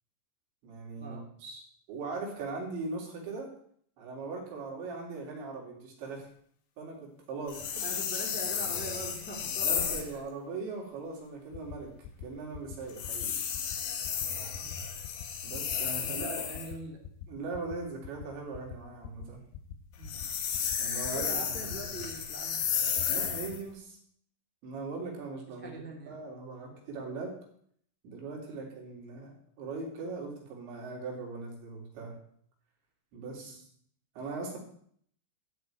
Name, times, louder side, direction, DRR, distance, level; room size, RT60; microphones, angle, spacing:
voice 1, 0.6-1.6 1.9-3.5 4.0-6.3 6.8-8.0 9.6-11.9 12.2-13.4 15.4-16.4 17.3-19.4 20.8-21.3 23.1-24.0 24.6-27.3 28.0-32.2 33.1-33.6 34.2-34.6, right 3 dB, 75° right, -1 dB, 5.5 m, -40 dB
sound 1, 7.5-10.1 12.9-16.7 19.9-23.6, left 8 dB, 65° left, 3.3 m, -33 dB
voice 2, 7.8-10.4 14.6-14.8 15.9-17.0 20.0-20.2 21.1-22.6 25.6-26.2 28.4-28.7 33.4-33.6, right 2 dB, 15° left, 0 dB, 0.3 m, -43 dB
sound 2, 11.5-11.8 12.0-12.3 12.5-12.8 13.0-13.3 13.5-13.8 14.0-14.3 14.5-14.8 15.0-15.3 15.5-15.8 16.0-16.3 16.5-16.8 17.0-17.3 17.5-17.8 18.0-18.3 18.5-18.8 19.0-19.3 19.5-19.8 20.0-20.3 20.5-20.8 21.0-21.3 21.5-21.8, left 10 dB, 85° left, 3.3 m, -43 dB
14.0 x 6.3 x 9.0 m, 0.63 s
omnidirectional pair, 5.3 m